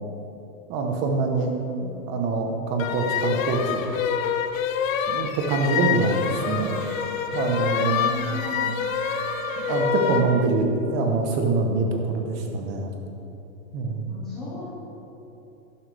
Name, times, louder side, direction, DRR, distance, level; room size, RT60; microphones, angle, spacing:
voice 1, 0.7-3.8 5.1-6.7 7.3-8.4 9.6-12.9 13.7-14.2, right 3 dB, 25° right, 2 dB, 1.1 m, -25 dB
sound 1, 2.8-10.3, left 8 dB, 75° left, 0.9 m, -27 dB
Wind instrument woodwind instrument, 5.7-10.6, right 8 dB, 80° right, 0.9 m, -38 dB
voice 2, 7.7-8.7 13.8-14.6, left 2 dB, 5° left, -12 dB, 0.3 m, -36 dB
11.5 x 11.5 x 3.5 m, 3.0 s
supercardioid pair, 165°, 41 cm